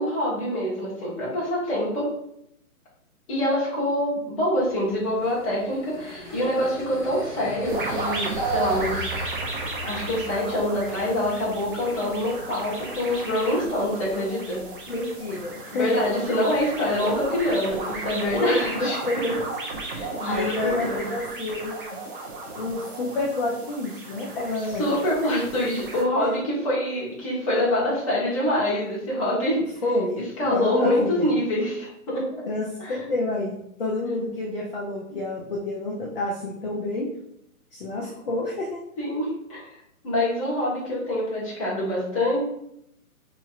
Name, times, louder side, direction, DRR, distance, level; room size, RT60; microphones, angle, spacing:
voice 1, 0.0-2.1 3.3-9.1 9.9-14.6 15.7-19.0 19.9-21.0 24.8-29.6 30.1-32.4 32.8-33.0 39.0-39.8 40.0-42.4, left 1 dB, 25° left, -7 dB, 1.2 m, -25 dB
sound 1, 4.5-15.0, left 1 dB, 5° right, 1.4 m, -41 dB
sound 2, 7.7-26.0, right 3 dB, 35° right, 0.7 m, -34 dB
voice 2, 14.9-16.0 18.3-19.4 19.8-20.0 20.2-22.0 22.6-24.8 26.2-26.3 29.8-31.3 32.5-37.1 37.7-38.8, left 2 dB, 40° left, -3 dB, 0.5 m, -29 dB
4.3 x 3.0 x 2.4 m, 0.75 s
hypercardioid pair, 160°, 45 cm